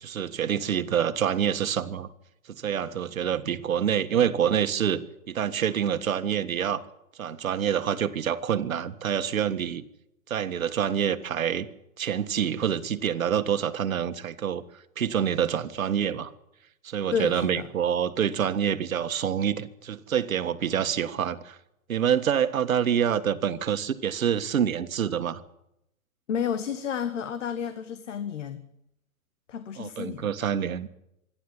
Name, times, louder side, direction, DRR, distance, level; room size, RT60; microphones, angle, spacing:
voice 1, 0.0-2.1 2.6-6.8 7.2-9.8 10.3-11.7 12.0-14.6 15.0-16.3 16.8-21.6 21.9-25.4 29.8-30.9, right 8 dB, 75° right, 10 dB, 1.7 m, -26 dB
voice 2, 17.1-17.7 26.3-28.6 29.5-30.5, left 7 dB, 60° left, 10 dB, 1.6 m, -31 dB
26.0 x 11.5 x 10.0 m, 0.83 s
hypercardioid pair, 160°, 41 cm